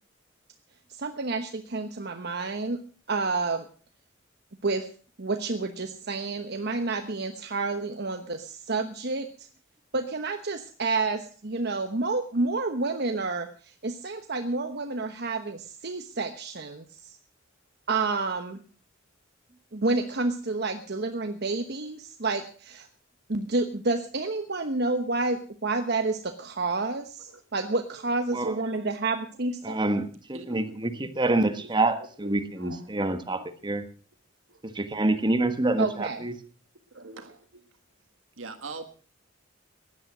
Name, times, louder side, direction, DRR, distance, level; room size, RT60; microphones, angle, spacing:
voice 1, 1.0-2.8 3.1-3.6 4.6-4.9 5.2-9.5 9.9-17.2 17.9-18.6 19.7-22.9 23.3-29.8 35.8-36.2, right 3 dB, 55° right, 1.1 m, -29 dB
voice 2, 27.3-27.9 28.4-28.9 30.3-31.7 32.2-32.9 33.3-33.4 34.5-34.6 34.9-35.0 35.9-36.0 36.9-37.7 38.4-39.0, right 3 dB, 80° right, 1.7 m, -45 dB
voice 3, 29.6-33.8 34.6-36.3, right 2 dB, 25° right, 1.4 m, -27 dB
16.5 x 11.0 x 6.1 m
head